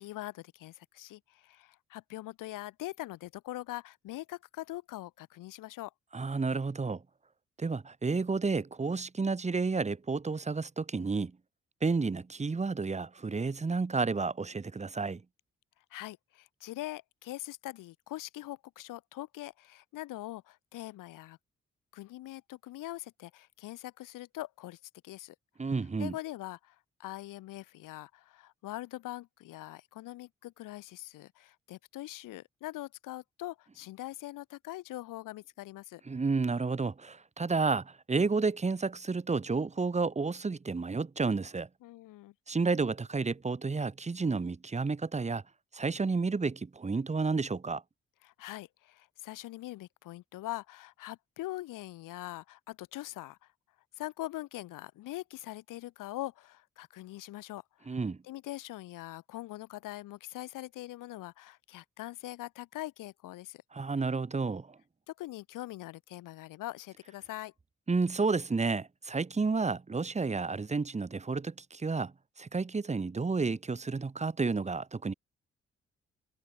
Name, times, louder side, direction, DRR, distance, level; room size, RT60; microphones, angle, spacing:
voice 1, 0.0-5.9 15.9-21.4 21.9-25.3 26.0-36.0 41.8-42.3 48.2-53.5 54.0-63.6 65.2-67.5, left 16 dB, 75° left, 1.1 m, -43 dB
voice 2, 6.1-7.0 7.6-11.3 11.8-15.2 25.6-26.1 36.1-41.7 42.5-45.4 45.7-47.8 57.9-58.2 63.7-64.8 67.9-75.1, right 4 dB, 20° right, 0.9 m, -31 dB
hypercardioid pair, 45°, 33 cm